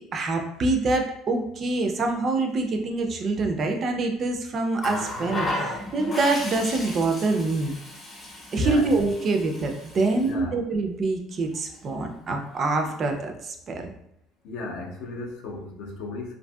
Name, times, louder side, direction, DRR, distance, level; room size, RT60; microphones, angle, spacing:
voice 1, 0.0-7.8 8.5-13.9, right 3 dB, 30° right, 4 dB, 0.3 m, -25 dB
Water tap faucet, 4.8-10.3 11.5-11.7, left 1 dB, 20° left, 0.6 m, -34 dB
voice 2, 8.5-9.0 10.1-10.6 14.4-16.3, left 3 dB, 65° left, 1 dB, 0.5 m, -35 dB
2.6 x 2.6 x 2.2 m, 0.75 s
cardioid pair, 155°, 0 cm